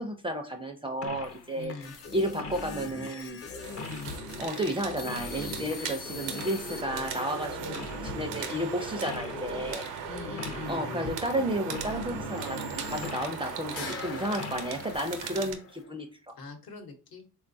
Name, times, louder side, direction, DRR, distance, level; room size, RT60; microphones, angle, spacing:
voice 1, 0.0-1.7 2.1-3.4 4.4-7.6 8.1-9.9 10.7-16.3, equal, 15° right, 5 dB, 0.4 m, -32 dB
sound 1, 1.0-1.4 1.7-13.4 13.7-15.9, left 3 dB, 35° left, 0.6 m, -41 dB
sound 2, 1.1-6.8 7.5-9.0 9.8-15.8, left 5 dB, 85° left, 0.8 m, -49 dB
voice 2, 1.5-1.9 3.8-4.1 7.6-7.9 8.5-8.7 10.0-10.8 16.3-17.3, left 4 dB, 60° left, 4 dB, 1.0 m, -42 dB
sound 3, 3.6-15.5, right 7 dB, 90° right, 0.7 m, -39 dB
3.5 x 2.3 x 2.6 m, 0.35 s
supercardioid pair, 75°, 41 cm